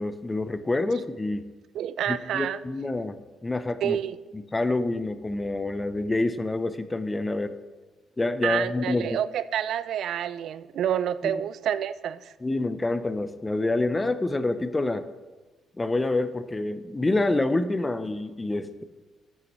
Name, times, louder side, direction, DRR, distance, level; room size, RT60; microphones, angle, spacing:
voice 1, 0.0-1.4 2.1-4.0 4.5-7.6 8.2-9.1 11.2-11.3 12.4-15.1 15.8-18.8, left 2 dB, 20° left, 12 dB, 0.6 m, -27 dB
voice 2, 1.7-2.6 3.8-4.2 8.4-12.3, right 10 dB, 75° right, 16 dB, 0.3 m, -28 dB
11.0 x 8.8 x 3.1 m, 1.3 s
cardioid pair, 90°, 0 cm